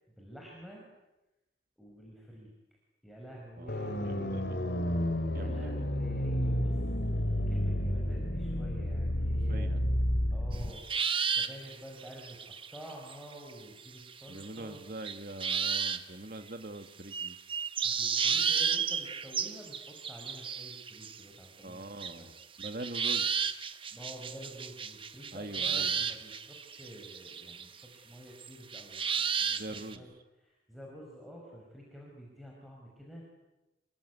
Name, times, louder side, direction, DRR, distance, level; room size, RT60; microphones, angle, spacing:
voice 1, 0.2-0.9 1.8-2.5 3.0-4.7 5.3-6.8 7.5-9.8 10.3-11.0 11.3-14.8 17.8-22.3 23.9-30.1 30.4-33.2, equal, ahead, -2 dB, 5.2 m, -49 dB
voice 2, 3.6-4.6 5.3-5.9 9.5-9.8 14.3-17.4 21.6-22.3 22.6-23.6 25.3-26.0 29.5-30.1, right 1 dB, 50° right, 7 dB, 1.9 m, -43 dB
sound 1, 3.7-10.7, equal, 70° left, 2.6 m, -31 dB
sound 2, 10.5-13.5 13.8-14.8 15.0-16.0 16.5-16.6 17.1-21.2 22.0-27.8 28.4-30.0, right 7 dB, 30° right, 1.2 m, -33 dB
27.5 x 22.0 x 9.6 m, 1.0 s
head